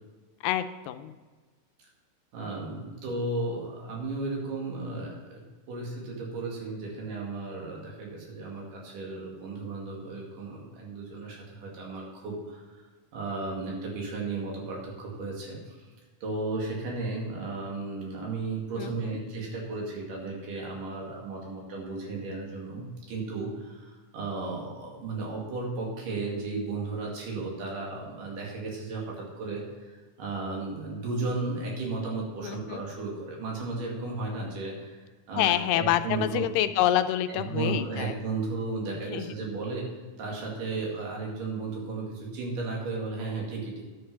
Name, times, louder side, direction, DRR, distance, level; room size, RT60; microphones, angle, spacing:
voice 1, 0.4-1.1 18.8-19.2 32.4-32.8 35.3-38.1 39.1-39.3, left 12 dB, 85° left, 10 dB, 2.2 m, -27 dB
voice 2, 2.3-5.4 5.7-12.8 13.1-15.9 16.2-36.4 37.3-39.9 40.2-43.9, right 3 dB, 80° right, -2 dB, 3.8 m, -34 dB
10.5 x 6.7 x 5.8 m, 1.4 s
omnidirectional pair, 3.8 m